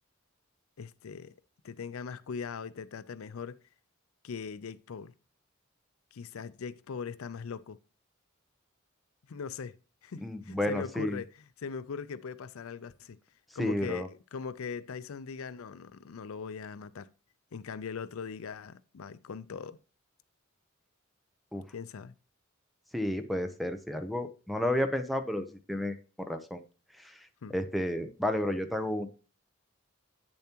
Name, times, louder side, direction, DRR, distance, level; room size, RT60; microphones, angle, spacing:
voice 1, 0.8-1.3 1.6-3.6 4.2-5.1 6.1-7.8 9.3-9.7 10.0-13.2 13.5-17.1 17.5-19.8 21.7-22.1 27.4-27.6, left 5 dB, 85° left, 0.5 m, -40 dB
voice 2, 10.2-11.2 13.6-14.1 21.5-21.6 22.9-26.6 27.0-27.2 27.5-29.1, left 1 dB, ahead, 0.7 m, -32 dB
8.5 x 7.0 x 2.9 m
head